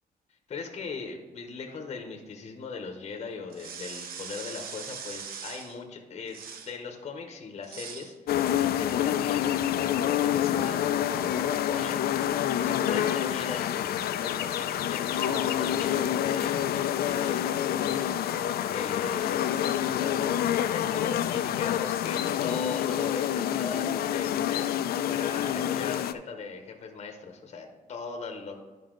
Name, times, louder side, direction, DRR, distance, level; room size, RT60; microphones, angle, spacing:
voice 1, 0.5-6.4 6.6-12.0 12.6-18.1 18.6-24.7 25.0-28.6, left 5 dB, 45° left, 3 dB, 0.9 m, -39 dB
sound 1, 3.5-5.8 6.3-6.8 7.6-8.1, right 6 dB, 75° right, 0.8 m, -41 dB
sound 2, 8.3-26.1, left 11 dB, 90° left, 0.4 m, -27 dB
10.5 x 5.3 x 3.8 m, 1.3 s
wide cardioid pair, 175°, 15 cm